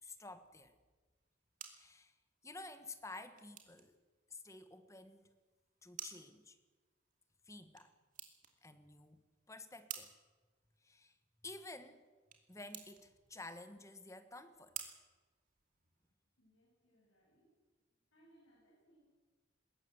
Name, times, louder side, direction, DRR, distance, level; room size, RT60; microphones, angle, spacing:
voice 1, 0.0-0.7 1.7-2.2 2.4-4.0 4.3-5.3 5.8-6.6 7.4-7.9 8.6-9.2 9.5-10.1 10.8-11.2 11.4-12.0 12.5-14.8, left 2 dB, 15° left, 9 dB, 1.3 m, -52 dB
sound 1, 1.1-16.1, right 9 dB, 40° right, 2.6 m, -55 dB
voice 2, 16.4-17.5 17.9-19.0, right 1 dB, 80° left, -4 dB, 6.5 m, -69 dB
21.0 x 17.0 x 7.9 m, 1.3 s
head